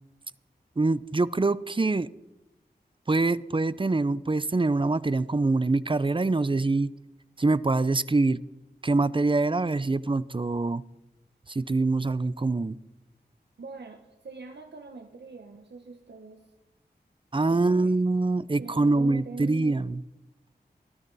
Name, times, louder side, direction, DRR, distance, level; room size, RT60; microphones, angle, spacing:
voice 1, 0.8-2.1 3.1-6.9 7.4-8.4 8.8-10.8 11.5-12.8 17.3-20.0, right 3 dB, 30° right, 17 dB, 0.6 m, -24 dB
voice 2, 13.6-16.4 17.5-17.9 18.6-19.8, right 3 dB, 80° right, 3 dB, 1.3 m, -43 dB
19.5 x 13.0 x 4.1 m, 0.95 s
wide cardioid pair, 55°, 18 cm